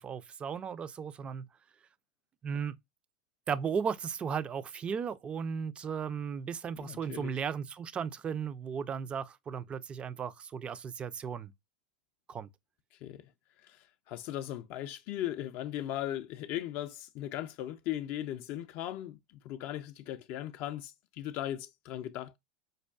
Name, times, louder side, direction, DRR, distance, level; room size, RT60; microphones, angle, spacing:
voice 1, 0.0-1.5 2.4-2.8 3.5-11.5 12.3-12.5, right 6 dB, 25° right, 0.3 m, -35 dB
voice 2, 6.8-7.3 13.0-13.3 13.6-22.4, left 12 dB, 50° left, 0.4 m, -38 dB
5.3 x 2.3 x 2.2 m
hypercardioid pair, 100°, 5 cm